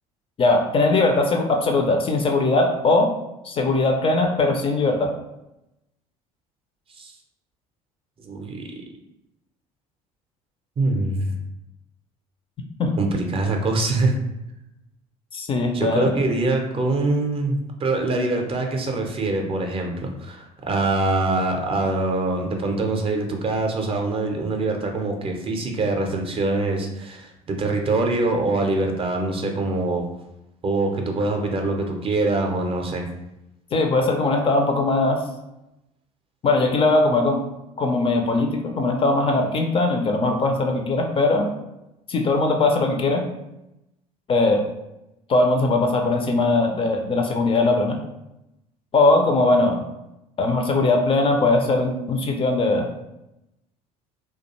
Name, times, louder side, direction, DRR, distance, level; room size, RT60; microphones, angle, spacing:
voice 1, 0.4-3.1 3.4-5.1 12.8-12.9 15.3-16.2 33.7-35.2 36.4-37.5 37.8-41.5 42.1-43.2 44.3-44.6 45.3-48.0 48.9-49.8 50.4-52.9, left 2 dB, 30° left, 3 dB, 0.4 m, -20 dB
voice 2, 8.2-8.6 10.8-11.4 13.0-14.1 15.7-30.0 30.6-33.1, right 2 dB, 30° right, 2 dB, 0.5 m, -24 dB
2.3 x 2.2 x 2.9 m, 0.90 s
figure-of-eight pair, 60°, 18 cm